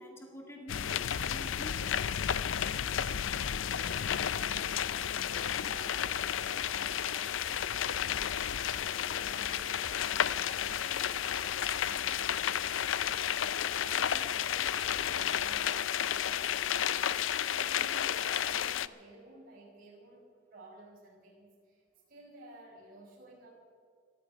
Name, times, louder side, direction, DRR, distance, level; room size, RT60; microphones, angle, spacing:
voice 1, 0.0-1.9, equal, 15° left, 0 dB, 2.1 m, -49 dB
sound 1, 0.7-18.9, left 9 dB, 80° left, 0.5 m, -32 dB
voice 2, 3.7-8.3 8.7-17.1 17.4-21.8 22.1-23.5, right 2 dB, 50° right, -4 dB, 5.3 m, -54 dB
18.5 x 13.5 x 5.8 m, 2.1 s
head